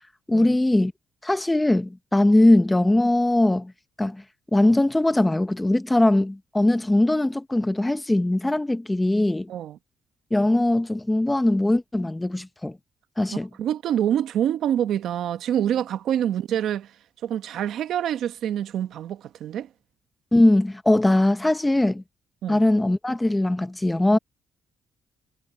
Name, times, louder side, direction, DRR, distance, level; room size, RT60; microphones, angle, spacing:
voice 1, 0.3-0.9 1.2-3.7 4.0-4.2 4.5-9.5 10.3-12.8 13.2-13.5 20.3-22.0 22.5-24.2, left 1 dB, 10° left, 1.0 m, -20 dB
voice 2, 13.6-16.9 17.2-19.7 22.4-22.6, right 10 dB, 75° right, 1.0 m, -26 dB
cardioid pair, 90°, 0 cm